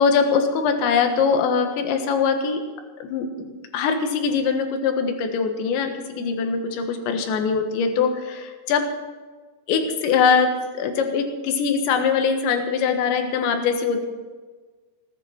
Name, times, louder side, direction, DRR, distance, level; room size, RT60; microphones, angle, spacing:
voice 1, 0.0-2.6 3.0-8.9 9.7-14.1, left 6 dB, 70° left, 5 dB, 3.6 m, -22 dB
18.5 x 10.0 x 5.9 m, 1.4 s
omnidirectional pair, 5.7 m